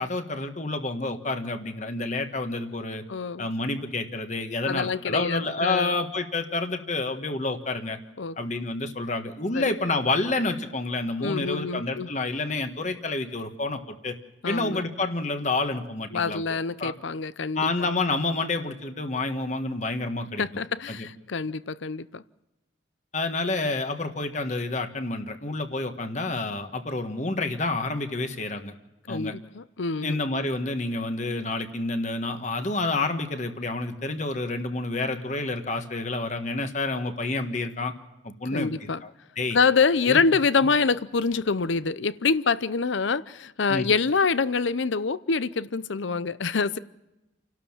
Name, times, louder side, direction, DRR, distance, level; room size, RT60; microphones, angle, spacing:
voice 1, 0.0-3.0 3.4-8.0 8.4-14.1 14.5-16.9 17.5-20.4 20.9-21.1 23.1-28.7 29.1-29.3 30.0-37.9 38.2-39.1 39.4-39.6 40.1-40.2 43.7-43.9, left 2 dB, 40° left, 1.5 m, -29 dB
voice 2, 3.1-3.5 4.7-6.0 8.2-8.4 9.5-9.6 11.2-12.1 14.4-14.8 16.1-17.9 20.4-22.2 29.1-30.2 38.5-39.0 39.5-46.8, left 4 dB, 80° left, 0.7 m, -26 dB
29.5 x 12.5 x 7.3 m
head